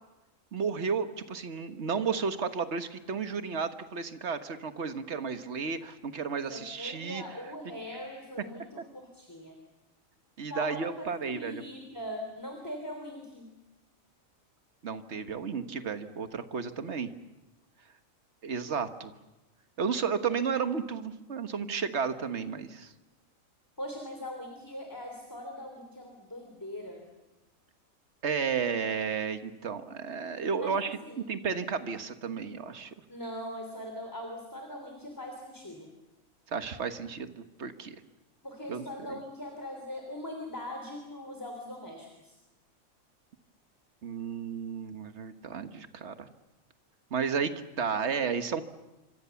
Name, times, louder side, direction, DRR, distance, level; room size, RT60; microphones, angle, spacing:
voice 1, 0.5-7.2 10.4-11.6 14.8-17.1 18.4-19.1 19.8-22.9 28.2-32.9 36.5-38.0 38.7-39.2 44.0-46.3 47.1-48.6, right 6 dB, 55° right, 9 dB, 1.6 m, -33 dB
voice 2, 6.5-9.5 10.5-13.5 23.8-27.0 30.6-31.2 33.1-35.9 38.4-42.4, left 1 dB, 15° left, 3 dB, 3.2 m, -41 dB
27.0 x 25.0 x 7.1 m, 1.0 s
omnidirectional pair, 1.4 m